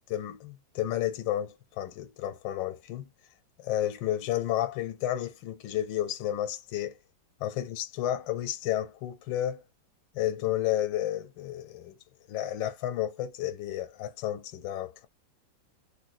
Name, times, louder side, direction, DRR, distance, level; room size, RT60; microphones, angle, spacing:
voice 1, 0.1-3.1 3.6-6.9 7.4-9.6 10.1-11.9 12.3-15.1, left 12 dB, 80° left, 1.3 m, -31 dB
3.7 x 2.3 x 2.5 m
omnidirectional pair, 2.0 m